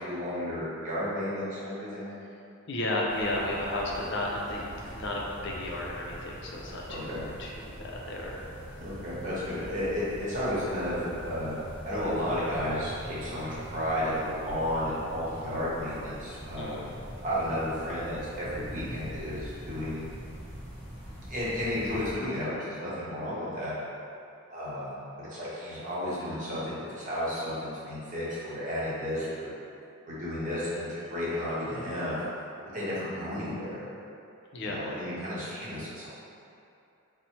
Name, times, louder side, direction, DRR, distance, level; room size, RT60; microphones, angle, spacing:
voice 1, 0.0-2.1 4.8-4.9 6.9-7.2 8.8-11.6 11.8-16.8 17.2-20.0 21.3-23.7 24.5-29.5 30.0-32.2 32.7-33.8 34.6-36.1, equal, 35° right, -9 dB, 1.1 m, -33 dB
voice 2, 2.7-8.4 16.6-16.9 34.5-34.8, left 1 dB, 55° left, -3 dB, 0.5 m, -33 dB
sound 1, 3.1-22.1, equal, 5° left, 0.8 m, -43 dB
4.1 x 2.1 x 4.4 m, 2.7 s
head